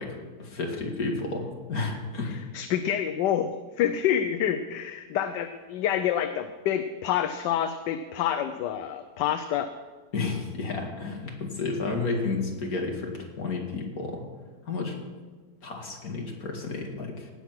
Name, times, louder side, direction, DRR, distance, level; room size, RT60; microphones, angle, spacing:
voice 1, 0.0-2.4 10.1-14.2 14.7-15.0 15.6-17.3, left 3 dB, 50° left, 1 dB, 2.4 m, -31 dB
voice 2, 2.5-9.7, left 9 dB, 75° left, 9 dB, 1.2 m, -27 dB
18.0 x 7.2 x 5.9 m, 1.4 s
omnidirectional pair, 2.0 m